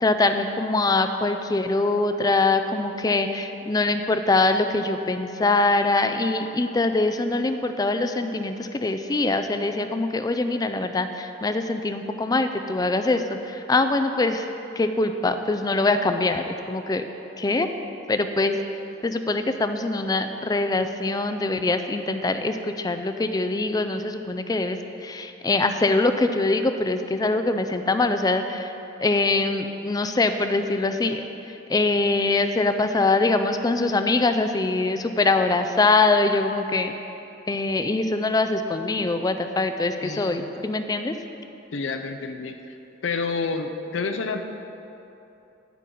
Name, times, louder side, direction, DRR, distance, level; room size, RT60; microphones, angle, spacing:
voice 1, 0.0-14.5 14.8-17.0 17.4-17.7 18.1-18.6 19.0-28.7 29.0-37.0 37.5-41.1, left 3 dB, 20° left, 8 dB, 0.4 m, -23 dB
voice 2, 40.0-40.5 41.7-42.5 43.0-44.4, left 4 dB, 75° left, 6 dB, 0.6 m, -29 dB
10.5 x 8.3 x 3.8 m, 3.0 s
head